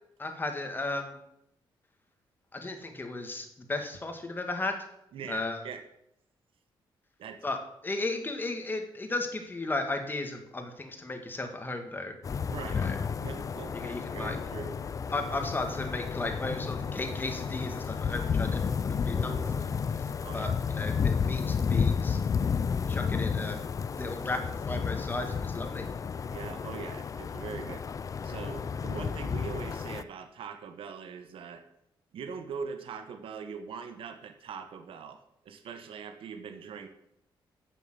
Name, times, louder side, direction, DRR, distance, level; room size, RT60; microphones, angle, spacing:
voice 1, 0.2-1.2 2.5-4.8 5.3-5.6 7.4-7.6 7.8-12.1 12.7-13.0 13.7-14.4 15.1-19.7 20.3-22.2 22.9-23.6 24.0-25.9, left 2 dB, 20° left, 5 dB, 1.8 m, -35 dB
voice 2, 5.1-5.8 7.2-7.4 12.5-12.9 13.2-14.7 20.2-20.5 26.3-27.8 28.2-31.6 32.1-35.2 35.4-36.9, right 6 dB, 70° right, 7 dB, 1.3 m, -41 dB
sound 1, 12.2-30.0, left 6 dB, 35° left, 0.5 m, -32 dB
sound 2, 13.2-21.1, right 1 dB, 20° right, 2.7 m, -50 dB
10.0 x 7.0 x 7.9 m, 0.78 s
cardioid pair, 130°, 9 cm